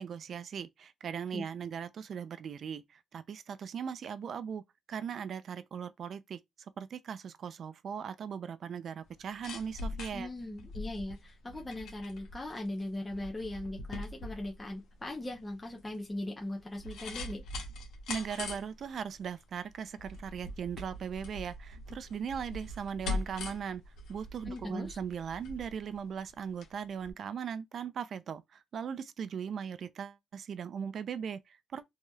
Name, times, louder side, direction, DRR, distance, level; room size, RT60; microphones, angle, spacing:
voice 1, 0.0-4.6 4.9-6.4 6.8-10.3 18.1-23.8 24.1-31.4 31.7-31.8, right 7 dB, 60° right, 0.4 m, -39 dB
sound 1, 9.1-26.7 27.0-27.1, left 2 dB, 80° left, 0.8 m, -42 dB
voice 2, 10.1-17.4 24.4-25.0, left 1 dB, 15° left, 0.7 m, -39 dB
3.0 x 2.7 x 2.2 m
cardioid pair, 90°, 0 cm